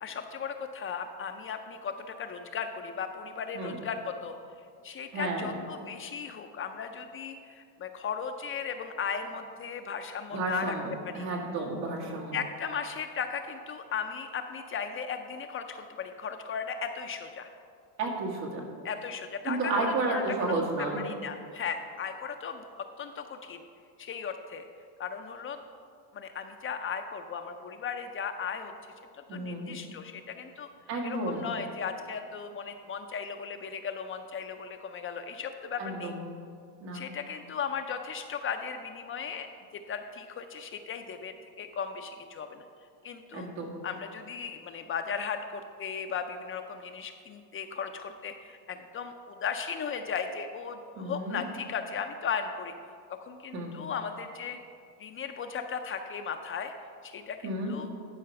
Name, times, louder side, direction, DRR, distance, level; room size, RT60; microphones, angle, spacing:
voice 1, 0.0-4.3 4.8-10.8 11.0-11.3 12.3-17.5 18.8-20.5 21.0-22.7 23.0-23.6 24.0-24.7 25.0-25.6 26.1-28.7 29.1-30.7 31.0-36.1 36.9-39.5 39.7-42.6 43.0-43.5 43.8-52.7 53.2-54.6 55.0-56.7 57.0-57.9, left 6 dB, 30° left, 6 dB, 0.3 m, -36 dB
voice 2, 5.1-5.5 10.3-12.4 18.0-18.6 19.4-21.0 29.3-29.7 30.9-31.5 35.8-36.2 36.8-37.1 43.3-43.7 51.0-51.4 53.5-53.7 57.4-57.7, right 2 dB, 85° right, -1 dB, 2.2 m, -32 dB
11.0 x 4.7 x 5.8 m, 2.3 s
supercardioid pair, 110°, 50 cm